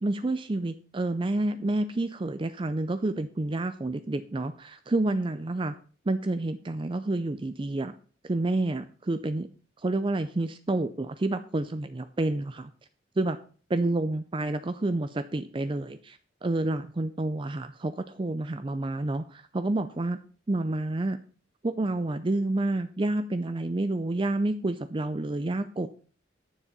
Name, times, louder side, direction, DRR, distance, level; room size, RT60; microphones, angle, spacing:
voice 1, 0.0-5.7 6.1-7.9 8.2-9.5 9.8-12.7 13.2-13.4 13.7-20.2 20.5-21.2 21.6-25.9, right 2 dB, 25° right, 11 dB, 0.4 m, -29 dB
9.8 x 7.0 x 5.3 m, 0.40 s
head